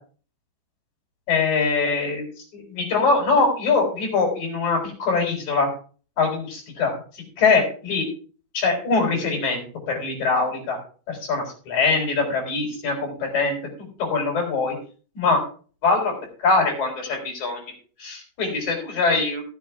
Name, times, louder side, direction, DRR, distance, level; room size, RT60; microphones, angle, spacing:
voice 1, 1.3-2.2 2.5-5.7 6.2-7.0 7.4-8.1 8.5-10.8 11.1-13.6 14.0-14.7 15.1-15.4 15.8-16.1 16.4-17.6 18.0-19.4, left 4 dB, 45° left, 0 dB, 4.9 m, -22 dB
15.0 x 7.8 x 3.5 m, 0.40 s
omnidirectional pair, 5.0 m